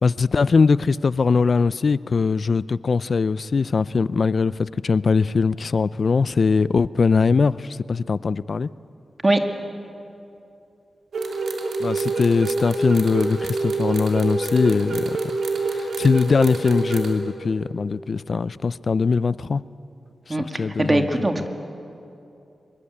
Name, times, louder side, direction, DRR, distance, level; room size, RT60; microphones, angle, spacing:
voice 1, 0.0-8.7 11.8-15.2 15.6-19.6 20.6-21.1, left 4 dB, 55° left, 18 dB, 0.5 m, -21 dB
sound 1, 11.1-17.1, right 3 dB, 80° right, 3.1 m, -26 dB
voice 2, 20.3-21.5, right 1 dB, 25° right, 5 dB, 2.2 m, -21 dB
24.0 x 22.0 x 8.5 m, 2.7 s
cardioid pair, 75°, 0 cm